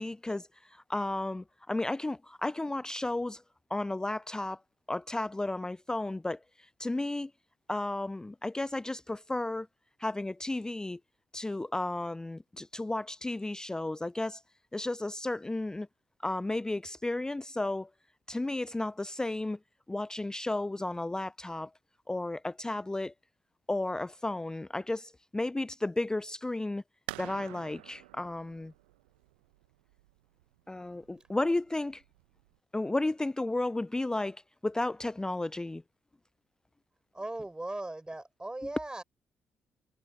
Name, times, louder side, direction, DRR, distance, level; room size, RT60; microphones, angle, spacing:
voice 1, 0.0-3.4 3.7-4.6 4.9-7.3 7.7-9.7 10.0-11.0 11.3-14.4 14.7-15.9 16.2-17.9 18.3-19.6 19.9-21.7 22.1-23.1 23.7-26.8 27.2-28.7 30.7-32.0 32.7-35.8, left 2 dB, 15° left, 0.4 m, -33 dB
sound 1, 27.1-32.6, right 21 dB, 80° right, 0.9 m, -49 dB
voice 2, 37.1-39.0, right 2 dB, 15° right, 6.9 m, -38 dB
figure-of-eight pair, 40°, 5 cm